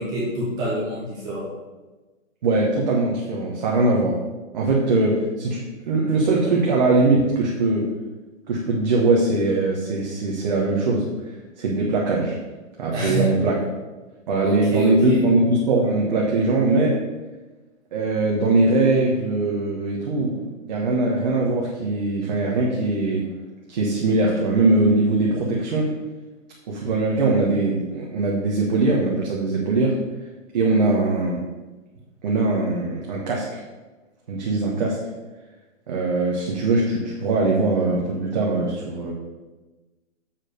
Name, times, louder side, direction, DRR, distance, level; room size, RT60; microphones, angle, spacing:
voice 1, 0.0-1.5 12.9-13.3 14.4-15.2, equal, 10° right, -6 dB, 1.1 m, -26 dB
voice 2, 2.4-4.2 4.5-7.9 8.5-12.4 12.8-13.6 14.3-17.0 17.9-20.4 20.7-23.3 23.7-26.0 26.7-30.0 30.5-31.5 32.2-33.6 34.3-35.0 35.9-39.1, right 2 dB, 35° right, -3 dB, 1.3 m, -21 dB
7.3 x 4.9 x 6.6 m, 1.2 s
hypercardioid pair, 170°, 39 cm